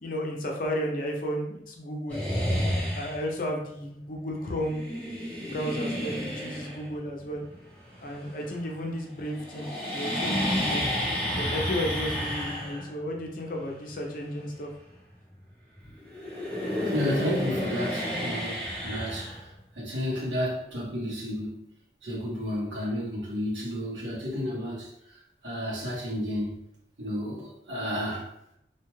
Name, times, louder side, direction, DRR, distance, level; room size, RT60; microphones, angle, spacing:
voice 1, 0.0-2.2 2.9-4.8 5.4-7.4 8.0-10.9 11.4-14.7, equal, 50° left, 0 dB, 0.5 m, -33 dB
sound 1, 2.1-3.4 4.6-8.9 9.1-15.7 16.0-19.9, equal, 10° left, 0.7 m, -31 dB
voice 2, 16.9-19.3 19.8-21.7 22.0-24.9 25.4-26.6 27.0-28.3, equal, 85° right, -6 dB, 1.2 m, -31 dB
2.7 x 2.2 x 3.0 m, 0.77 s
head